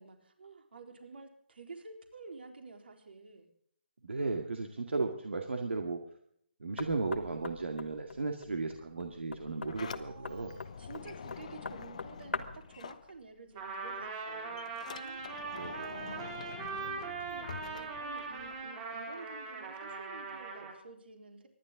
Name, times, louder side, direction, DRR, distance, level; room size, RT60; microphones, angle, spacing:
voice 1, 0.0-3.5 9.8-14.7 15.0-15.5 15.9-21.5, right 4 dB, 65° right, 4 dB, 4.0 m, -51 dB
voice 2, 4.0-6.0 6.6-10.6 15.6-16.0, right 3 dB, 80° right, 4 dB, 2.1 m, -35 dB
Knock, 6.8-12.7, left 4 dB, 85° left, 1.7 m, -43 dB
Sliding door, 9.3-13.6 13.9-18.7, left 7 dB, 35° left, 0.8 m, -47 dB
Trumpet, 13.5-20.8, right 4 dB, 20° right, 3.3 m, -41 dB
25.0 x 11.5 x 3.8 m, 0.67 s
hypercardioid pair, 170°, 6 cm